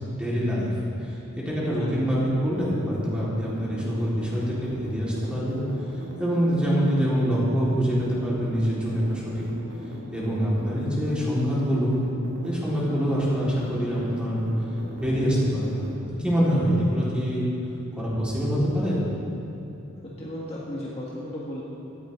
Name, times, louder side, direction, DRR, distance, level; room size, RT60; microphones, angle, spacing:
voice 1, 0.1-5.6 6.2-9.5 10.1-11.9 12.4-14.4 14.9-17.5 18.0-19.0, equal, 5° right, -8 dB, 3.9 m, -25 dB
sound 1, 2.5-15.9, equal, 75° right, 2.5 m, -40 dB
voice 2, 20.0-21.6, left 1 dB, 30° left, -5 dB, 1.6 m, -35 dB
17.0 x 14.5 x 3.7 m, 2.9 s
head